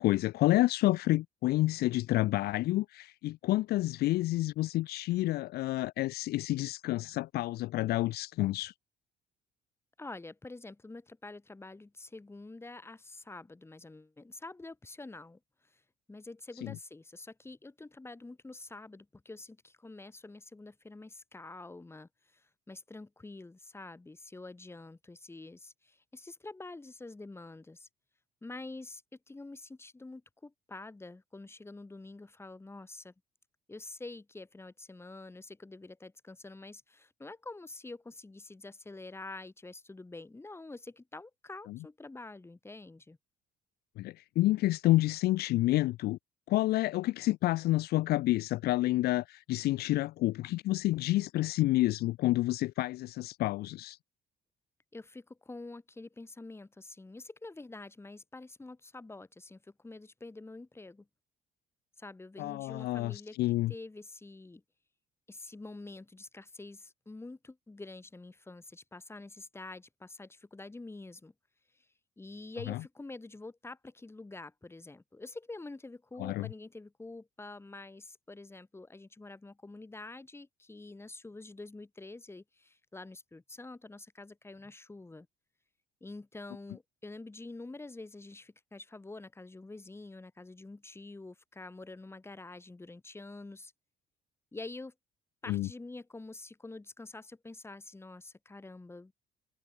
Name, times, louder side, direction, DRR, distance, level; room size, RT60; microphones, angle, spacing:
voice 1, 0.0-8.7 16.6-16.7 41.7-41.8 44.0-46.2 46.5-54.0 62.4-63.7 72.7-72.8 76.2-76.5 95.5-95.7, left 17 dB, 70° left, 0.5 m, -29 dB
voice 2, 10.0-15.4 16.1-27.9 28.4-33.1 33.7-43.2 54.9-61.1 62.0-63.4 63.7-64.6 65.3-71.3 71.7-71.9 72.2-85.3 86.0-93.7 94.5-94.9 95.4-99.1, left 2 dB, 15° left, 5.7 m, -47 dB
cardioid pair, 110°, 17 cm